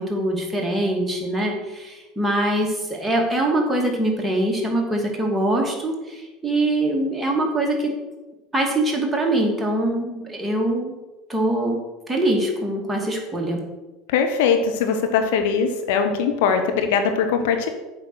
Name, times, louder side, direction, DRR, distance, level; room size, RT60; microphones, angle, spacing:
voice 1, 0.0-7.9 8.5-11.0 11.3-11.8 12.1-13.6, right 1 dB, 10° right, -1 dB, 2.4 m, -23 dB
voice 2, 14.1-17.7, left 6 dB, 65° left, 6 dB, 0.9 m, -21 dB
8.0 x 5.6 x 6.2 m, 1.1 s
figure-of-eight pair, 75°, 0 cm